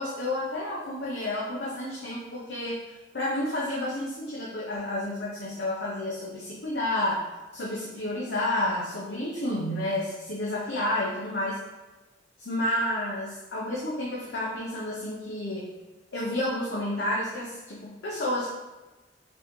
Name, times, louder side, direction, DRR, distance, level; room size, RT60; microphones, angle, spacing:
voice 1, 0.0-2.8 3.1-7.3 7.5-11.6 12.4-15.7 16.1-18.5, left 1 dB, 70° left, -5 dB, 0.7 m, -30 dB
4.0 x 3.0 x 3.6 m, 1.1 s
head